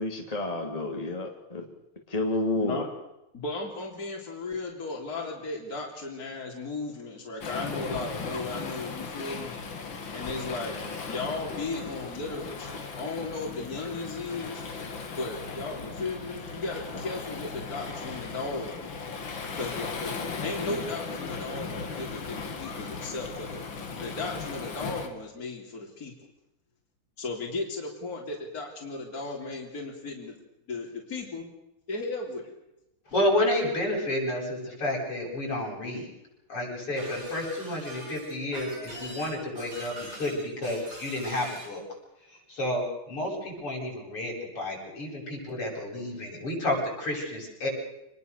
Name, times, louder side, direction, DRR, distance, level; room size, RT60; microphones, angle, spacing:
voice 1, 0.0-1.6 2.1-2.9, left 2 dB, 15° left, 2 dB, 3.1 m, -30 dB
voice 2, 3.3-9.5 10.1-10.8 11.0-14.6 15.1-19.0 19.5-23.7 24.0-26.1 27.2-30.3 30.7-31.5 31.9-32.5, left 3 dB, 40° left, 0 dB, 4.0 m, -36 dB
Waves surf, 7.4-25.1, left 4 dB, 60° left, 3.0 m, -37 dB
voice 3, 33.1-36.1 36.5-41.8 42.5-47.7, left 1 dB, 85° left, -2 dB, 9.0 m, -30 dB
Shatter, 37.0-41.7, right 1 dB, 45° right, 7.3 m, -43 dB
27.0 x 20.5 x 6.8 m, 0.91 s
omnidirectional pair, 2.4 m